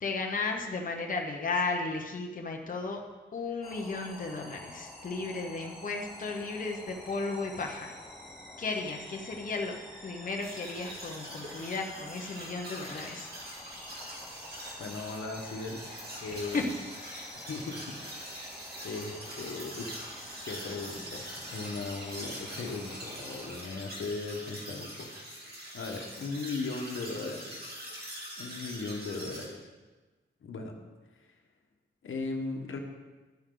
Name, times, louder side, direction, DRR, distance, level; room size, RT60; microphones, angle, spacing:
voice 1, 0.0-3.0 3.3-8.0 8.6-9.8 10.0-13.3 16.5-16.6 17.0-17.2, left 3 dB, 45° left, 1 dB, 1.1 m, -34 dB
sound 1, 3.6-23.5, left 1 dB, ahead, 3.4 m, -48 dB
sound 2, 10.4-29.5, equal, 50° right, 2.8 m, -44 dB
voice 2, 14.8-15.8 16.2-16.8 17.4-18.4 18.8-20.1 20.5-25.1 25.4-27.7 28.4-29.7 30.4-30.8 31.2-31.3 32.0-32.8, left 3 dB, 85° left, 2 dB, 1.4 m, -38 dB
11.5 x 9.6 x 3.9 m, 1.2 s
wide cardioid pair, 125°, 20 cm